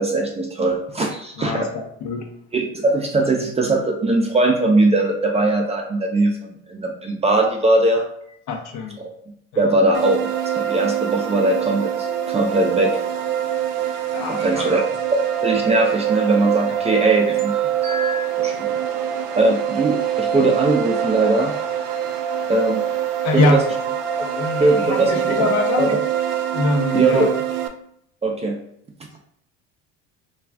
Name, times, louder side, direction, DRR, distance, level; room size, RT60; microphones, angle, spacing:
voice 1, 0.0-1.7 2.5-8.0 9.6-10.2 10.5-11.9 12.3-13.0 14.3-14.8 15.1-18.7 19.4-21.5 22.5-22.8 23.3-23.6 24.6-25.5 25.8-26.0 26.9-27.3 28.2-28.6, right 2 dB, 20° right, 1 dB, 0.5 m, -20 dB
voice 2, 1.4-2.3 8.5-9.0 9.5-9.7 14.1-14.7 23.2-23.6 24.2-25.9 26.5-27.3, left 2 dB, 55° left, 3 dB, 0.8 m, -23 dB
sound 1, 9.9-27.7, right 10 dB, 70° right, 0.5 m, -24 dB
2.4 x 2.3 x 3.3 m, 0.72 s
supercardioid pair, 95°, 33 cm